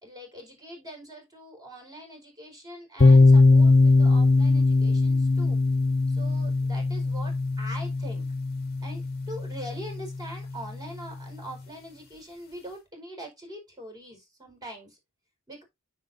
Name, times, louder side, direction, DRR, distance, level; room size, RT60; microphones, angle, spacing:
voice 1, 0.0-5.6 6.1-8.2 8.8-9.0 9.3-15.0 15.5-15.6, equal, 20° right, 4.6 m, -42 dB
sound 1, 3.0-10.7, left 3 dB, 45° left, 1.1 m, -21 dB
9.6 x 7.2 x 2.7 m
head